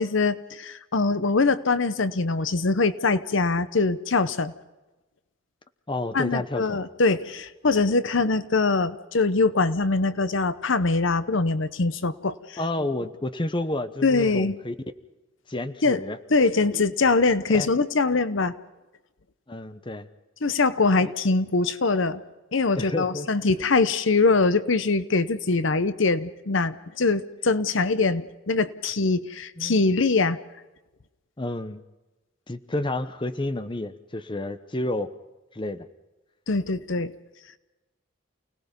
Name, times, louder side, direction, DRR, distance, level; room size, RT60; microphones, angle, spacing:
voice 1, 0.0-4.5 6.1-12.6 14.0-14.6 15.8-16.0 16.3-18.5 20.4-22.2 22.5-30.4 36.5-37.1, left 3 dB, 65° left, 14 dB, 0.8 m, -23 dB
voice 2, 5.9-6.8 12.6-14.7 15.5-16.2 17.5-17.7 19.5-20.1 21.0-21.1 22.8-23.3 29.6-29.8 31.4-31.8 32.5-35.1 35.5-35.8, left 2 dB, 25° left, 11 dB, 0.9 m, -30 dB
29.0 x 18.5 x 5.4 m, 1.1 s
head